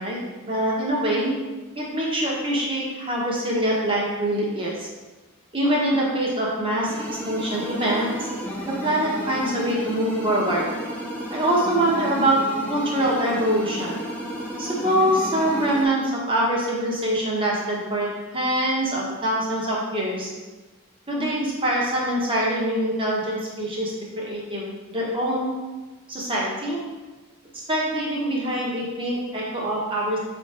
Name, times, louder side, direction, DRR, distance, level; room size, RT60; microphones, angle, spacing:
voice 1, 0.0-1.3 1.7-4.9 5.5-7.0 7.2-8.3 8.8-10.8 11.3-14.0 14.6-20.3 21.1-25.6 26.1-26.8 27.5-30.2, right 1 dB, 25° right, -4 dB, 1.2 m, -24 dB
sound 1, 6.8-15.8, equal, 5° left, 0.7 m, -32 dB
6.2 x 3.5 x 4.3 m, 1.2 s
head